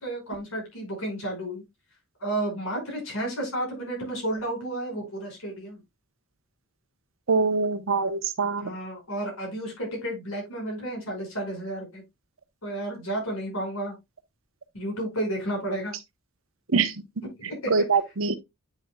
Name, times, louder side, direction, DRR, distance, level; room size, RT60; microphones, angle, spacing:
voice 1, 0.0-1.6 2.2-5.8 8.6-12.0 12.6-13.9 14.7-15.9 17.4-17.7, right 1 dB, 80° left, 5.4 m, -32 dB
voice 2, 7.3-8.7 16.7-16.9 17.7-18.4, right 4 dB, 65° right, 0.9 m, -23 dB
9.4 x 6.3 x 2.2 m
head